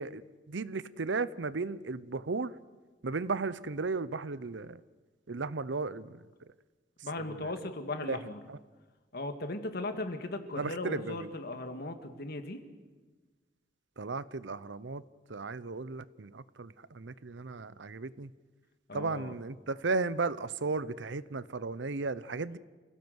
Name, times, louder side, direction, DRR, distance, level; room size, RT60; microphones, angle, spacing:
voice 1, 0.0-2.5 3.0-4.8 5.3-6.2 7.3-7.5 8.1-8.2 8.5-8.6 10.6-11.3 14.0-15.0 15.3-18.3 18.9-22.6, right 3 dB, 75° right, 17 dB, 0.7 m, -35 dB
voice 2, 7.0-8.4 9.1-12.6 18.9-19.4, left 2 dB, 60° left, 7 dB, 2.0 m, -37 dB
28.0 x 17.0 x 8.0 m, 1.3 s
head